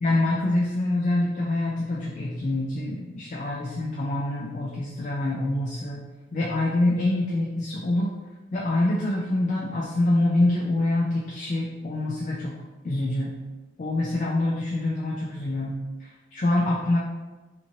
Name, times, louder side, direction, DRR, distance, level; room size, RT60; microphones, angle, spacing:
voice 1, 0.0-6.0 6.3-8.2 8.5-12.6 12.8-13.3 13.8-17.0, left 2 dB, 40° left, -3 dB, 0.3 m, -25 dB
2.6 x 2.6 x 2.8 m, 1.2 s
head